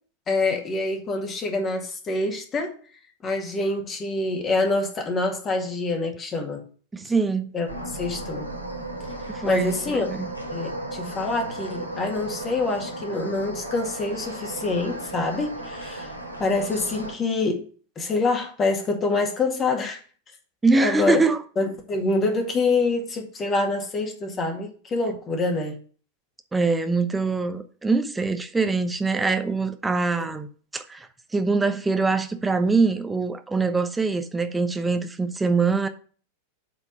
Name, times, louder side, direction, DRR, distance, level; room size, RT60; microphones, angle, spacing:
voice 1, 0.3-2.8 3.2-6.6 7.5-8.5 9.4-10.1 10.5-16.1 16.4-17.6 18.0-20.0 20.7-21.2 21.6-25.8 30.2-30.3, left 3 dB, 25° left, 2.1 m, -26 dB
voice 2, 6.9-7.5 9.3-10.3 20.6-21.4 26.5-31.1 31.3-35.9, right 4 dB, 10° right, 0.9 m, -23 dB
sound 1, 7.7-17.2, right 1 dB, 85° left, 1.5 m, -35 dB
8.2 x 4.4 x 6.7 m
figure-of-eight pair, 90°, 0 cm